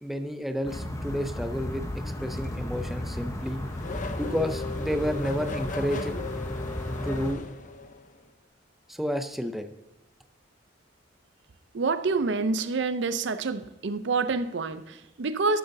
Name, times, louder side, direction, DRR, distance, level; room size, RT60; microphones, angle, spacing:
voice 1, 0.0-1.8 2.2-3.6 4.2-6.2 7.0-7.4 8.9-9.7, equal, ahead, 0.5 m, -30 dB
sound 1, 0.6-7.3, left 1 dB, 15° left, 0.9 m, -34 dB
Race car auto racing / Accelerating revving vroom, 2.7-8.2, left 3 dB, 40° left, 0.7 m, -37 dB
voice 2, 11.7-15.6, right 4 dB, 65° right, 0.5 m, -27 dB
13.0 x 7.8 x 2.7 m
head